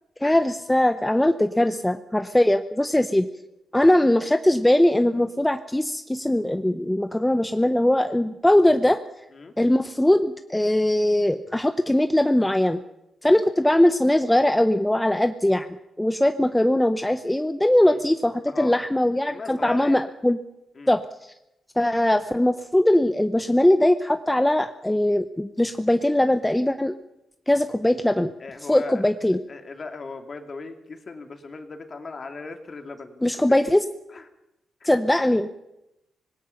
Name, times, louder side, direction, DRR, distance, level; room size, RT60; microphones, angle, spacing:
voice 1, 0.2-3.3 3.7-9.0 9.6-12.8 13.2-15.7 16.0-20.4 20.9-21.0 21.8-27.0 27.5-28.3 28.7-29.4 33.2-33.8 34.9-35.5, left 1 dB, 5° left, 8 dB, 0.8 m, -20 dB
voice 2, 18.5-18.9 19.3-20.0 20.7-20.9 28.4-29.0 29.5-33.7 34.1-34.3, left 4 dB, 35° left, 5 dB, 2.6 m, -38 dB
25.5 x 20.0 x 5.8 m, 0.89 s
cardioid pair, 120°, 0 cm